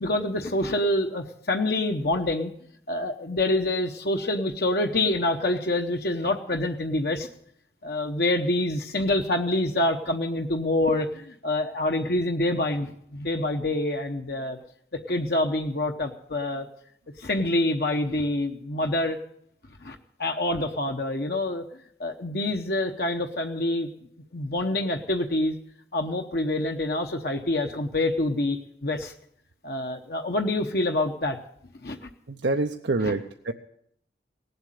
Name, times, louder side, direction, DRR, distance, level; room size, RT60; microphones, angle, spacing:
voice 1, 0.0-2.5 2.9-7.3 7.8-14.6 14.9-16.7 17.2-19.2 19.8-21.6 22.0-23.9 24.3-25.5 25.9-29.1 29.6-31.4 31.8-32.1 33.0-33.1, left 1 dB, 60° left, 4 dB, 0.9 m, -26 dB
voice 2, 32.3-33.5, right 3 dB, 85° right, 5 dB, 0.7 m, -26 dB
18.0 x 8.0 x 9.0 m, 0.69 s
head